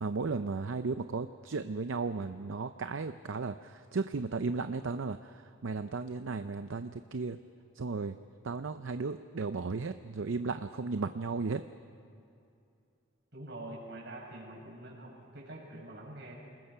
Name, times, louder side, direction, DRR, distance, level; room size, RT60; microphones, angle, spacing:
voice 1, 0.0-7.4 7.8-8.2 8.4-11.6, right 4 dB, 75° right, 10 dB, 0.6 m, -35 dB
voice 2, 13.3-16.4, right 1 dB, 55° right, -3 dB, 6.3 m, -45 dB
28.5 x 20.0 x 5.6 m, 2.6 s
head